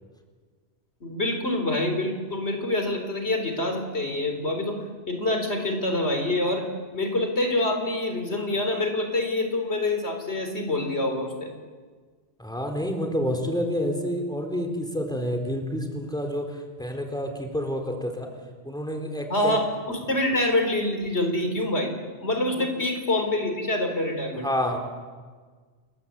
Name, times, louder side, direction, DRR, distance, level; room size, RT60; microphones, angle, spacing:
voice 1, 1.0-4.8 5.1-6.7 6.9-11.5 19.3-21.9 22.2-24.5, left 1 dB, 90° left, 5 dB, 4.4 m, -26 dB
voice 2, 12.4-18.3 18.6-19.6 22.5-22.7 24.4-24.8, equal, 5° left, 2 dB, 4.2 m, -29 dB
28.5 x 22.5 x 8.5 m, 1.5 s
omnidirectional pair, 1.1 m